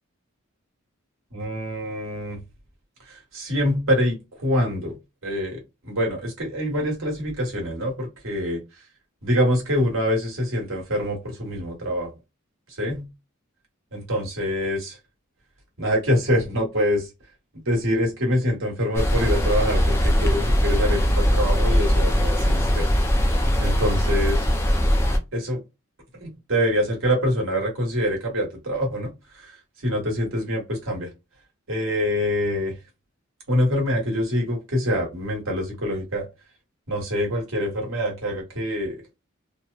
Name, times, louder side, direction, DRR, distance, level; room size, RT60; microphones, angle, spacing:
voice 1, 1.3-2.4 3.0-5.0 5.2-8.8 9.2-12.1 12.7-13.1 13.9-15.0 15.8-17.1 17.6-22.9 23.2-24.5 25.3-25.6 26.1-31.1 31.7-32.8 33.5-36.3 36.9-39.0, equal, 75° right, 1.2 m, -25 dB
sound 1, 18.9-25.2, equal, 10° left, 0.4 m, -20 dB
3.0 x 2.0 x 2.3 m
head